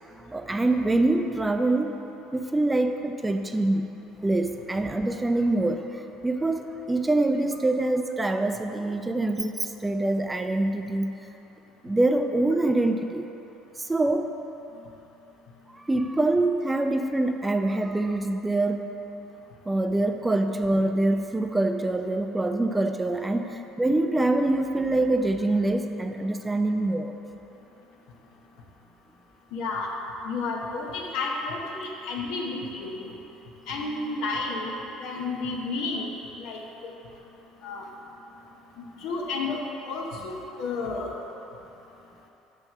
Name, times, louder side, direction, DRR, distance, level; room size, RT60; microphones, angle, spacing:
voice 1, 0.0-2.0 2.3-3.9 4.2-11.1 11.8-13.3 13.8-14.3 15.7-19.0 19.7-27.1 31.7-32.0, right 2 dB, 15° right, 6 dB, 0.4 m, -25 dB
voice 2, 29.5-29.9 30.2-33.1 33.7-34.7 35.0-36.1 36.4-36.9 37.6-37.8 38.8-41.1, left 3 dB, 70° left, 0 dB, 1.0 m, -31 dB
6.0 x 5.3 x 5.6 m, 3.0 s
supercardioid pair, 75°, 0 cm